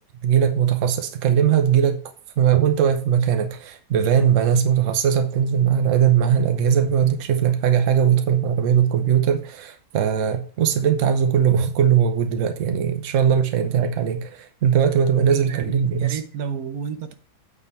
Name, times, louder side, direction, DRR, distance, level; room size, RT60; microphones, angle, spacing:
voice 1, 0.2-2.0 2.4-16.2, right 8 dB, 60° right, 1.1 m, -20 dB
voice 2, 15.3-17.1, right 7 dB, 75° right, 1.3 m, -31 dB
8.7 x 4.4 x 4.4 m
omnidirectional pair, 1.6 m